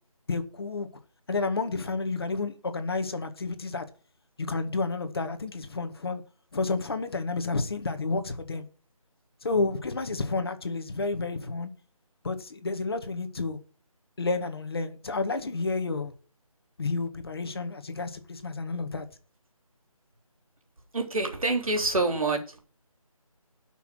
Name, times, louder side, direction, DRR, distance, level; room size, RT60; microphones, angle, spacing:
voice 1, 0.3-0.9 1.3-3.9 4.4-6.2 6.5-8.7 9.4-11.7 12.2-13.6 14.2-16.1 16.8-19.1, left 3 dB, 40° left, 1.7 m, -30 dB
voice 2, 20.9-22.6, right 3 dB, 70° right, 3.5 m, -27 dB
11.5 x 6.1 x 6.2 m
figure-of-eight pair, 170°, 19 cm